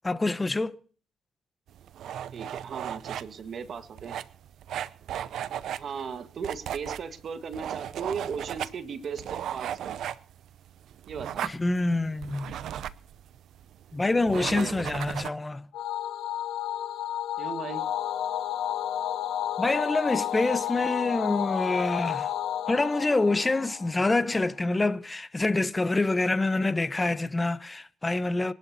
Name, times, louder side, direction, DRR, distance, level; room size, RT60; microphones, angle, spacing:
voice 1, 0.0-0.8 11.4-12.5 13.9-15.7 19.6-22.3 22.7-28.5, left 2 dB, 20° left, 1.0 m, -26 dB
sound 1, 1.7-15.3, right 10 dB, 75° right, 0.7 m, -37 dB
voice 2, 2.3-4.2 5.7-10.0 11.1-11.5 14.3-15.0 17.4-17.9, right 6 dB, 55° right, 1.6 m, -37 dB
sound 2, 15.7-24.3, left 11 dB, 75° left, 0.6 m, -31 dB
24.5 x 12.0 x 2.8 m
cardioid pair, 90°, 0 cm